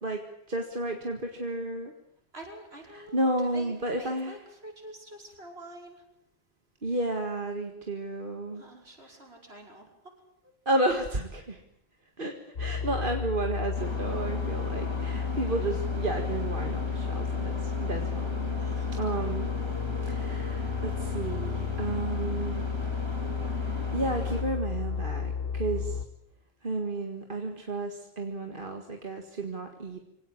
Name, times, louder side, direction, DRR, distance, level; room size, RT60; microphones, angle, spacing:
voice 1, 0.0-1.9 2.9-4.4 6.8-8.6 9.0-9.1 10.7-11.6 12.2-18.6 18.9-19.5 20.0-22.7 23.7-26.0 26.6-30.0, right 2 dB, 50° right, 4 dB, 2.0 m, -32 dB
voice 2, 2.3-6.0 8.5-9.9 11.5-11.6 18.6-19.3, right 1 dB, 65° right, 1 dB, 5.6 m, -47 dB
sound 1, 12.6-26.1, left 6 dB, 60° left, 1.5 m, -32 dB
sound 2, 13.8-24.4, equal, 25° right, 3.6 m, -38 dB
24.5 x 18.0 x 8.6 m, 0.80 s
omnidirectional pair, 1.1 m